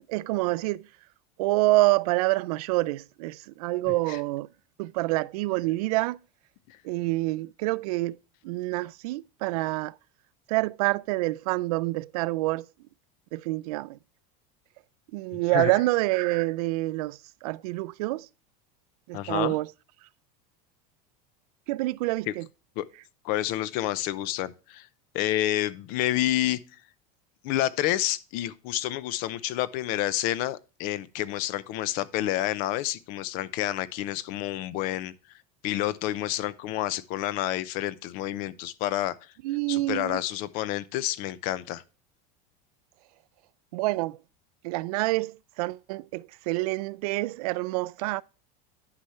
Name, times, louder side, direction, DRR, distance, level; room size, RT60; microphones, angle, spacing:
voice 1, 0.1-0.9 1.4-4.5 4.8-6.2 6.8-8.2 8.4-9.9 10.5-12.7 13.3-14.0 15.1-18.3 19.1-19.7 21.7-22.5 39.4-40.2 43.7-44.2 44.6-48.2, right 20 dB, 80° right, 0.4 m, -27 dB
voice 2, 3.9-4.2 6.7-6.8 15.3-15.7 19.1-19.6 22.3-22.4 22.8-22.9 23.2-24.9 25.1-26.6 27.4-35.1 35.6-39.2 39.7-41.8, left 14 dB, 45° left, 0.6 m, -29 dB
9.8 x 5.7 x 3.1 m
supercardioid pair, 165°, 19 cm